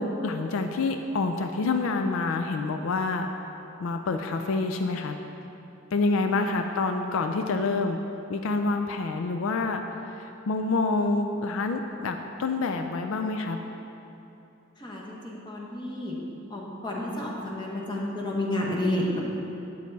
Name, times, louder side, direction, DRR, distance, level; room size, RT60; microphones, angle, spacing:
voice 1, 0.0-3.3 3.8-5.2 5.9-8.0 8.3-9.8 10.1-13.6, left 3 dB, 80° left, 5 dB, 0.4 m, -27 dB
voice 2, 14.8-16.1 16.5-19.2, left 1 dB, 20° left, -3 dB, 1.1 m, -30 dB
8.4 x 6.4 x 4.0 m, 2.9 s
head